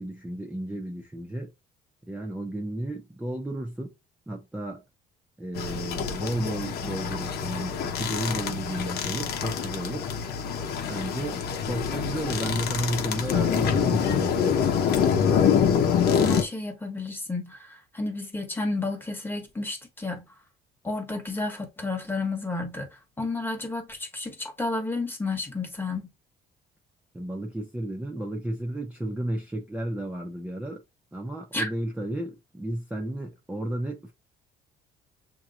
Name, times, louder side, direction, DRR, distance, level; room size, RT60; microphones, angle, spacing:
voice 1, 0.0-1.5 2.1-3.9 4.3-4.8 5.4-10.1 10.9-14.4 27.1-30.8 31.1-34.1, right 1 dB, 5° right, 0.8 m, -33 dB
sound 1, 5.5-16.4, left 7 dB, 70° left, 1.0 m, -26 dB
voice 2, 16.1-20.2 20.8-26.1 31.5-31.7, left 2 dB, 10° left, 1.3 m, -31 dB
6.9 x 2.9 x 2.5 m
cardioid pair, 110°, 17 cm